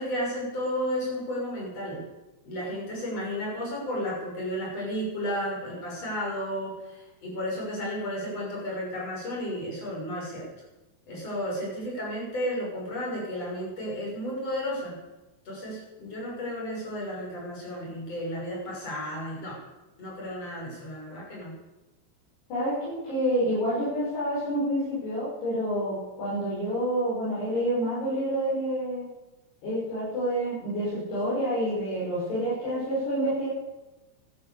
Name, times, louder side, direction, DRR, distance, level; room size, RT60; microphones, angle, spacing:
voice 1, 0.0-2.0 2.4-10.5 11.1-15.0 15.5-19.6 20.0-21.6, equal, 35° left, -3 dB, 7.0 m, -33 dB
voice 2, 22.5-29.1 29.6-33.5, equal, 70° left, -9 dB, 7.9 m, -28 dB
17.0 x 12.0 x 7.0 m, 1.0 s
omnidirectional pair, 4.9 m